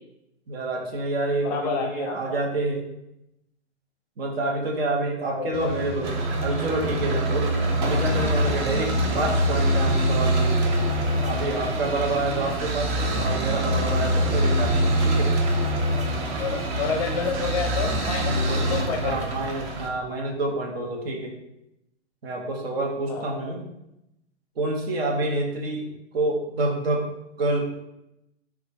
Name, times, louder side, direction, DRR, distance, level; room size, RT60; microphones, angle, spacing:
voice 1, 0.5-2.9 4.2-6.1 6.4-7.5 7.8-10.8 11.2-15.3 18.5-18.7 19.0-21.3 22.2-23.7 24.6-25.9 26.1-27.1 27.4-27.8, right 2 dB, 60° right, 1 dB, 1.0 m, -28 dB
voice 2, 1.4-2.4 5.4-5.8 16.4-18.3 18.6-19.3 23.1-23.3, left 5 dB, 35° left, 3 dB, 0.5 m, -29 dB
sound 1, 5.5-19.9, right 1 dB, 25° right, 0.4 m, -24 dB
3.8 x 2.4 x 4.0 m, 0.85 s
figure-of-eight pair, 110°, 34 cm